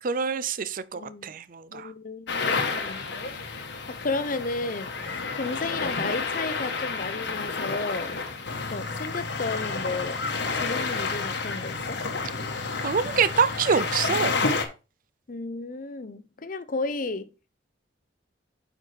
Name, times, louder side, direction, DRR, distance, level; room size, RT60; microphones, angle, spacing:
voice 1, 0.0-1.9 12.8-14.4, right 6 dB, 45° right, 0.4 m, -26 dB
voice 2, 0.9-1.3 1.7-8.1 8.7-10.2 10.5-12.0 15.3-17.3, left 3 dB, 45° left, 0.6 m, -33 dB
sound 1, 2.3-14.6, left 4 dB, 60° left, 1.2 m, -30 dB
8.5 x 5.2 x 3.3 m
head